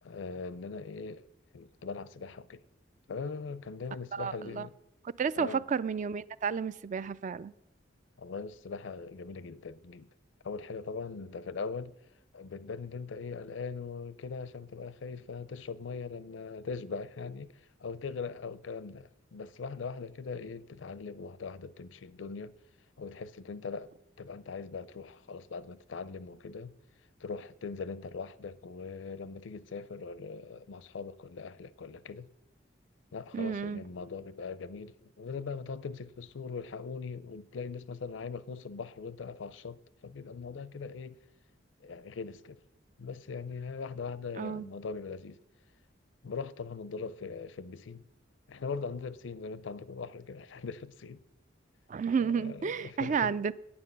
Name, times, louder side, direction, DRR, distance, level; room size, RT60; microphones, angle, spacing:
voice 1, 0.0-1.3 1.5-2.6 3.1-4.7 5.4-5.6 8.2-10.1 10.4-11.9 12.3-22.5 23.0-26.7 27.2-32.3 33.1-41.2 41.8-42.6 43.0-45.4 46.2-48.0 48.5-51.2 52.2-53.4, left 5 dB, 80° left, 0.5 m, -41 dB
voice 2, 4.1-4.7 5.2-7.5 33.3-33.8 44.4-44.7 51.9-53.5, right 6 dB, 40° right, 0.3 m, -31 dB
9.6 x 8.9 x 6.7 m
head